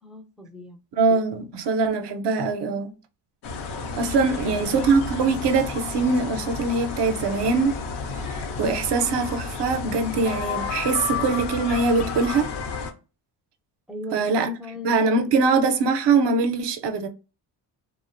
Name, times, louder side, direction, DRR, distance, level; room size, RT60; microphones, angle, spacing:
voice 1, 0.0-0.8 4.2-4.8 13.9-15.3, left 1 dB, ahead, 0.4 m, -39 dB
voice 2, 1.0-2.9 4.0-7.8 8.3-12.5 14.1-14.5 14.8-17.1, right 4 dB, 60° right, 0.6 m, -22 dB
sound 1, 3.4-12.9, left 5 dB, 55° left, 0.6 m, -31 dB
2.6 x 2.1 x 2.4 m
cardioid pair, 90°, 49 cm